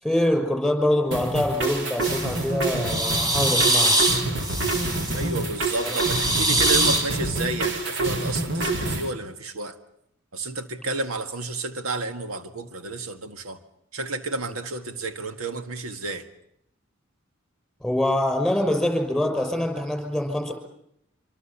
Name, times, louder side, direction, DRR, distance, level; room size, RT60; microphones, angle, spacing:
voice 1, 0.0-4.0 5.8-6.0 17.8-20.5, left 1 dB, ahead, 5 dB, 6.1 m, -24 dB
sound 1, 1.1-9.1, right 2 dB, 60° right, 4.0 m, -27 dB
sound 2, 2.0-2.4 2.8-5.3 5.8-7.1, right 1 dB, 20° right, 3.2 m, -23 dB
voice 2, 5.2-9.8 10.3-13.6 13.9-16.2, right 3 dB, 90° right, 8 dB, 1.8 m, -31 dB
26.5 x 25.0 x 7.2 m, 0.74 s
head